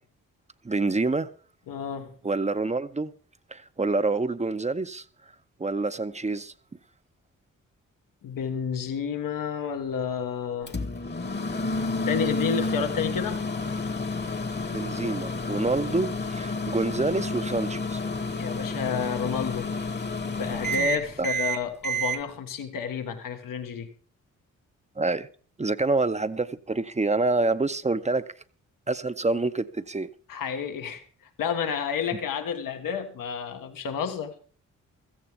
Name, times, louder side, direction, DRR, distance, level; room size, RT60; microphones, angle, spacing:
voice 1, 0.6-1.3 2.2-3.1 3.5-5.0 5.6-6.5 14.7-18.0 21.2-21.3 25.0-25.3 25.6-28.3 28.9-30.1, right 3 dB, 20° right, 0.7 m, -27 dB
voice 2, 1.7-2.1 8.2-10.7 12.0-13.4 18.4-19.7 20.3-23.9 30.3-31.0 31.4-34.3, left 6 dB, 85° left, 1.6 m, -30 dB
Microwave oven, 10.7-22.2, left 1 dB, 35° left, 1.3 m, -30 dB
16.0 x 14.0 x 3.6 m
cardioid pair, 60°, 32 cm